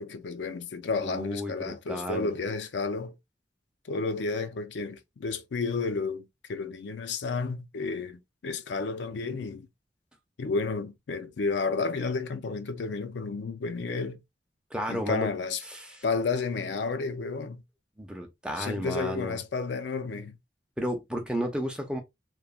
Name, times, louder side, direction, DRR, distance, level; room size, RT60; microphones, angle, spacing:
voice 1, 0.0-3.1 3.8-9.7 10.4-14.2 14.9-15.6 16.0-17.6 18.6-20.4, left 4 dB, 80° left, 0.5 m, -31 dB
voice 2, 1.0-2.3 14.7-15.3 15.6-16.0 18.0-19.4 20.8-22.0, equal, 5° right, 0.5 m, -33 dB
3.0 x 2.1 x 2.3 m
head